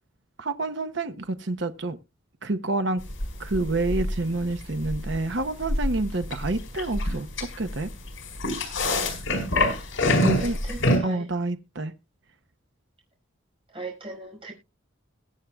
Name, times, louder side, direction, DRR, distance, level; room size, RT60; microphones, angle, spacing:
voice 1, 0.4-2.0 2.4-3.0 3.4-7.9 10.1-10.6 11.0-11.9, right 2 dB, 60° right, 0.8 m, -28 dB
sound 1, 3.1-11.0, left 1 dB, 75° left, 4.6 m, -26 dB
voice 2, 10.3-11.2 13.7-14.5, right 2 dB, 30° right, 5.4 m, -38 dB
22.0 x 7.5 x 2.3 m
head